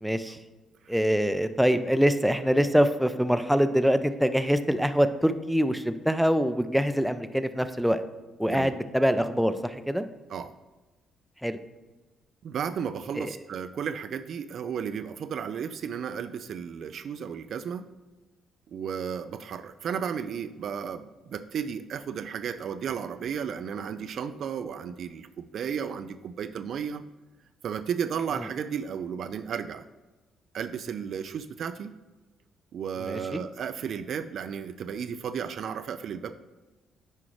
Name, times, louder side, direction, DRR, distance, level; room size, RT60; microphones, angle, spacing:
voice 1, 0.0-0.4 0.9-8.0 8.4-10.1 11.4-11.6 13.2-13.3 33.1-33.4, equal, ahead, 10 dB, 0.5 m, -24 dB
voice 2, 12.4-17.9 18.7-27.0 27.6-29.9 30.5-32.0 32.7-36.4, right 7 dB, 60° right, 10 dB, 0.3 m, -34 dB
9.6 x 4.9 x 3.1 m, 1.2 s
hypercardioid pair, 45°, 0 cm